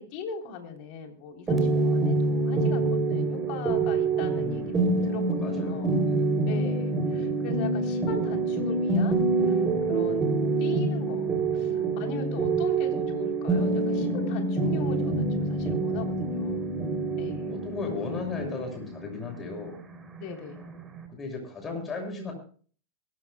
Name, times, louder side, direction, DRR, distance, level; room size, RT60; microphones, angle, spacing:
voice 1, 0.0-4.6 4.9-5.9 6.5-10.3 10.6-16.6 17.2-17.6 18.0-18.4 20.2-20.7, left 5 dB, 50° left, 3 dB, 3.6 m, -40 dB
sound 1, 1.5-21.0, right 3 dB, 20° right, 3.1 m, -26 dB
voice 2, 4.3-4.8 5.4-6.3 9.9-10.4 12.6-12.7 17.4-19.8 20.6-20.7 21.1-22.3, left 4 dB, 25° left, 3 dB, 6.8 m, -36 dB
23.5 x 13.5 x 2.3 m, 0.43 s
hypercardioid pair, 95°, 0 cm